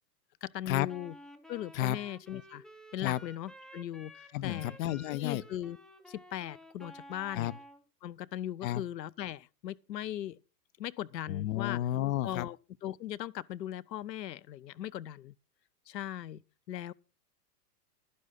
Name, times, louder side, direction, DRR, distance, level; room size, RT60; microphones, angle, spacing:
voice 1, 0.4-1.2 1.5-2.6 2.9-4.8 5.1-5.8 6.1-7.5 8.0-10.4 10.8-11.8 12.2-12.6 12.8-15.3 15.9-16.4 16.7-16.9, left 12 dB, 90° left, 0.7 m, -39 dB
Wind instrument woodwind instrument, 0.9-7.8, equal, ahead, 0.6 m, -52 dB
voice 2, 4.3-5.4 7.3-7.5 8.6-8.8 11.3-12.5, left 13 dB, 55° left, 0.8 m, -31 dB
11.0 x 10.5 x 4.1 m
hypercardioid pair, 125°, 49 cm